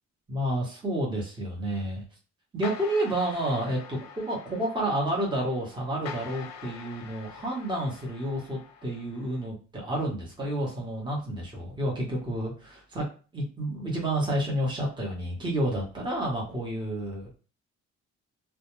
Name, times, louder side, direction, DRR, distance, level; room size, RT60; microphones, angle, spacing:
voice 1, 0.3-2.0 2.5-13.0 13.3-17.3, right 1 dB, 15° right, -3 dB, 1.0 m, -30 dB
sound 1, 2.6-9.5, left 7 dB, 60° left, 0.5 m, -45 dB
2.2 x 2.2 x 3.0 m, 0.36 s
cardioid pair, 90°, 30 cm